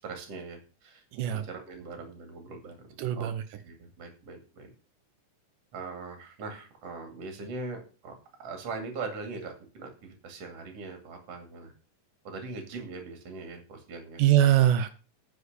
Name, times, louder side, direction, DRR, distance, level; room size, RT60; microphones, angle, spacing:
voice 1, 0.0-4.7 5.7-8.1 8.4-11.7 12.2-14.2, right 3 dB, 50° right, 4 dB, 3.3 m, -41 dB
voice 2, 1.1-1.4 3.0-3.4 14.2-14.9, right 12 dB, 80° right, 10 dB, 2.5 m, -22 dB
9.7 x 6.3 x 6.7 m, 0.34 s
omnidirectional pair, 3.7 m